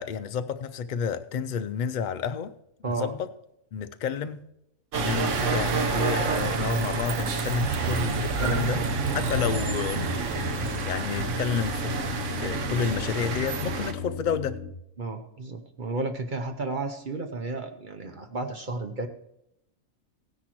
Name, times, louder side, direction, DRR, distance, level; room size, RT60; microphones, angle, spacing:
voice 1, 0.0-2.5 2.8-3.3 3.7-4.4 5.0-8.8 9.1-14.6, left 6 dB, 80° left, 0.4 m, -30 dB
sound 1, 4.9-13.9, right 4 dB, 65° right, 1.3 m, -28 dB
voice 2, 8.4-9.2 15.0-19.1, right 3 dB, 45° right, 0.8 m, -32 dB
sound 2, 8.9-14.7, left 6 dB, 55° left, 1.5 m, -37 dB
16.0 x 10.0 x 3.0 m
omnidirectional pair, 1.4 m